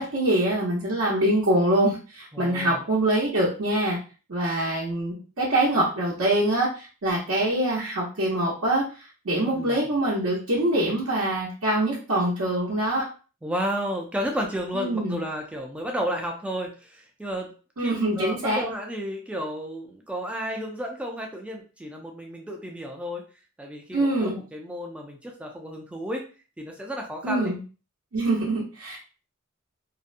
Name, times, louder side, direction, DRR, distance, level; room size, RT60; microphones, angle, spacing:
voice 1, 0.0-4.0 4.3-13.0 14.7-15.2 17.8-18.6 23.9-24.4 27.2-27.6 28.1-29.0, right 1 dB, 75° right, -7 dB, 0.8 m, -24 dB
voice 2, 2.3-2.8 9.5-9.8 13.4-17.5 17.8-23.2 23.6-26.2 26.6-27.5, equal, 5° right, 1 dB, 0.3 m, -32 dB
2.6 x 2.1 x 2.4 m, 0.36 s
head